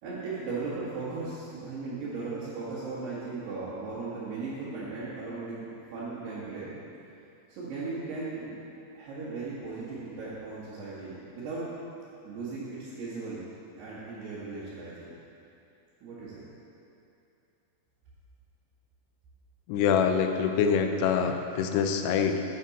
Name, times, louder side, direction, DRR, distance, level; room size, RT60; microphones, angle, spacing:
voice 1, 0.0-6.7 7.5-8.5 9.0-11.7 12.2-13.4 13.8-15.1 16.0-16.5, right 3 dB, 80° right, -11 dB, 3.7 m, -37 dB
voice 2, 19.7-22.4, left 7 dB, 85° left, 6 dB, 2.7 m, -25 dB
10.5 x 8.5 x 4.2 m, 2.7 s
omnidirectional pair, 4.6 m